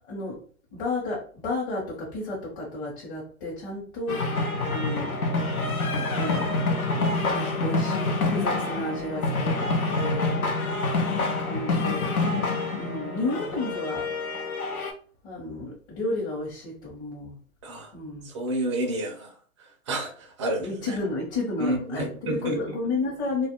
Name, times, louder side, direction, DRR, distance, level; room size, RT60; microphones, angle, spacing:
voice 1, 0.1-0.4 0.7-4.3 4.7-5.1 6.1-6.6 7.3-9.6 10.0-10.4 11.4-12.1 12.7-14.1 15.2-17.4 17.9-18.3 20.6-23.5, left 2 dB, 35° left, -5 dB, 0.9 m, -32 dB
sound 1, 4.1-14.9, left 3 dB, 90° left, 0.7 m, -27 dB
voice 2, 17.6-17.9 18.2-21.0 21.6-22.8, right 1 dB, 25° right, 1 dB, 0.4 m, -31 dB
2.4 x 2.1 x 2.8 m, 0.43 s
hypercardioid pair, 125°, 42 cm